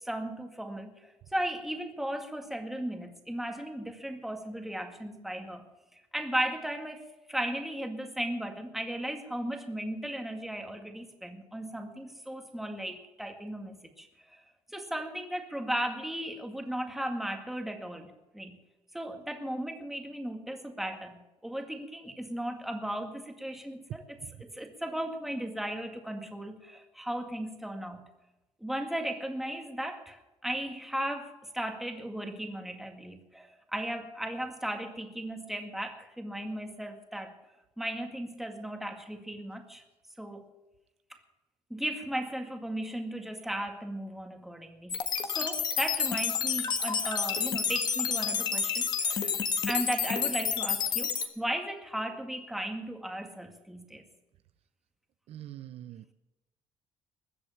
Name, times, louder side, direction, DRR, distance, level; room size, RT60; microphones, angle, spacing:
voice 1, 0.0-5.6 5.9-14.4 14.7-18.6 18.9-28.1 28.6-37.3 37.8-39.8 40.2-40.4 41.1-41.2 41.7-54.0, right 1 dB, ahead, 4 dB, 2.0 m, -36 dB
sound 1, 44.9-51.3, left 6 dB, 40° left, 1.4 m, -29 dB
voice 2, 55.3-56.1, right 12 dB, 65° right, 12 dB, 0.7 m, -44 dB
21.0 x 7.7 x 7.2 m, 0.99 s
cardioid pair, 135°, 11 cm